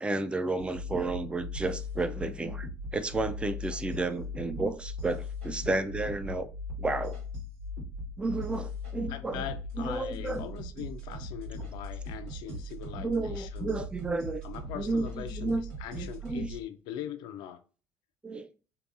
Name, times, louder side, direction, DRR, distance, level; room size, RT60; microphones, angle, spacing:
voice 1, 0.0-2.7 2.9-6.5 6.8-7.2 8.2-9.5 9.8-10.5 12.9-14.4 14.8-15.6 16.0-16.5 18.2-18.5, right 3 dB, 15° right, 0.3 m, -32 dB
sound 1, 0.6-16.6, left 2 dB, 90° right, 1.3 m, -39 dB
voice 2, 9.1-13.8 14.4-17.6, left 10 dB, 65° left, 0.4 m, -41 dB
2.7 x 2.5 x 2.4 m
hypercardioid pair, 65°, 8 cm